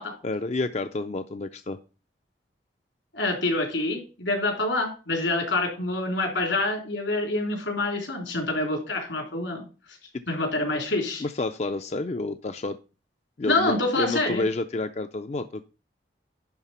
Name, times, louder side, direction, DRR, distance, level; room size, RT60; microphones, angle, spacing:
voice 1, 0.2-1.8 11.2-12.8 13.4-15.7, left 2 dB, 35° left, 8 dB, 0.4 m, -29 dB
voice 2, 3.1-9.6 10.3-11.2 13.4-14.4, left 2 dB, 85° left, 2 dB, 3.4 m, -26 dB
10.5 x 3.7 x 5.6 m, 0.33 s
head